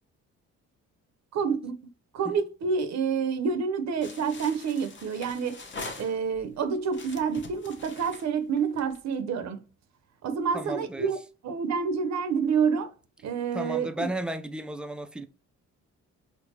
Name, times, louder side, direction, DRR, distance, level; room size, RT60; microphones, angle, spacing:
voice 1, 1.3-1.8 2.1-5.6 6.0-9.6 10.2-11.2 11.4-12.9 13.2-14.1, right 6 dB, 65° right, 0.7 m, -28 dB
sound 1, 4.0-6.5 6.9-9.1, left 3 dB, 40° left, 0.8 m, -43 dB
voice 2, 10.5-11.1 13.5-15.3, right 1 dB, 5° right, 0.3 m, -34 dB
4.5 x 2.1 x 2.7 m
cardioid pair, 90°, 30 cm